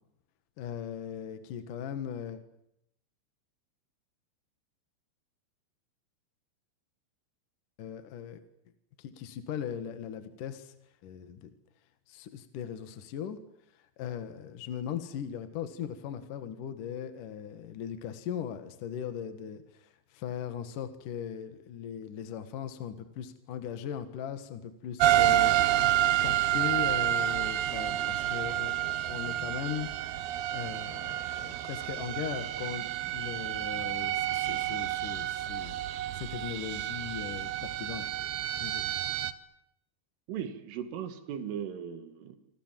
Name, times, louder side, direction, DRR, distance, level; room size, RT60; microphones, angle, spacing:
voice 1, 0.6-2.4 7.8-8.4 9.0-10.7 11.0-11.5 12.1-13.4 13.7-25.7 26.2-29.9 30.5-35.8 36.1-38.1 38.5-38.9, left 8 dB, 55° left, 10 dB, 2.6 m, -39 dB
sound 1, 25.0-39.3, right 13 dB, 70° right, 2.7 m, -29 dB
voice 2, 40.3-42.4, right 8 dB, 90° right, 10 dB, 4.8 m, -38 dB
28.0 x 26.0 x 7.6 m, 0.80 s
omnidirectional pair, 5.5 m